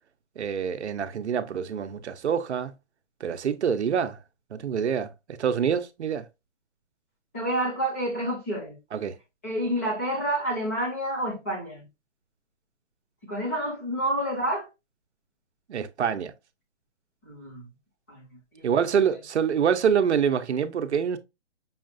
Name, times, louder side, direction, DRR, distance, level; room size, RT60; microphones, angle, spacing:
voice 1, 0.4-2.7 3.2-4.2 4.5-5.1 5.4-6.2 8.9-9.2 15.7-16.3 18.6-21.2, right 7 dB, 65° right, 0.7 m, -26 dB
voice 2, 7.3-8.8 9.4-11.8 13.2-14.7 17.2-17.6 18.1-18.2 18.5-18.9, right 1 dB, 15° left, 0.8 m, -29 dB
5.6 x 2.4 x 2.5 m
hypercardioid pair, 175°, 36 cm